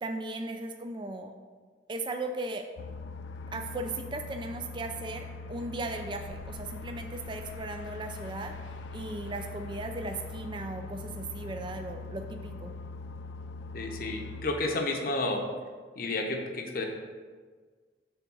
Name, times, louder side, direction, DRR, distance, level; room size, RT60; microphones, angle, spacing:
voice 1, 0.0-1.4 1.9-2.7 3.5-8.5 8.9-12.7, right 2 dB, 25° right, 5 dB, 0.4 m, -37 dB
sound 1, 2.8-14.5, left 3 dB, 85° left, 0.3 m, -42 dB
voice 2, 13.7-15.4 16.0-16.9, left 2 dB, 50° left, 2 dB, 0.8 m, -31 dB
7.0 x 3.4 x 6.1 m, 1.5 s
head